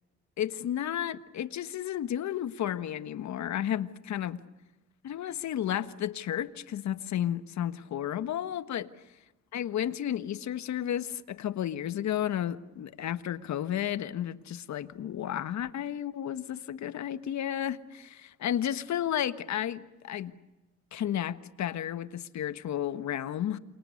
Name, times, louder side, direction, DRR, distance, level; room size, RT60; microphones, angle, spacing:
voice 1, 0.4-4.4 5.0-8.9 9.5-20.3 20.9-23.6, left 10 dB, 65° left, 1.5 m, -32 dB
29.5 x 28.0 x 6.6 m
cardioid pair, 90°, 30 cm